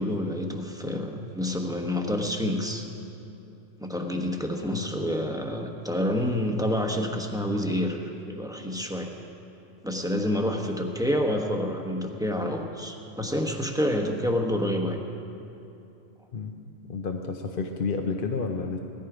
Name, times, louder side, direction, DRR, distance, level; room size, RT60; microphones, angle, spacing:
voice 1, 0.0-2.9 3.8-8.0 8.3-9.1 9.8-15.0, left 1 dB, 5° right, 2 dB, 1.0 m, -28 dB
voice 2, 16.9-18.8, left 4 dB, 50° left, 4 dB, 0.9 m, -30 dB
17.5 x 14.0 x 5.0 m, 2.8 s
omnidirectional pair, 1.2 m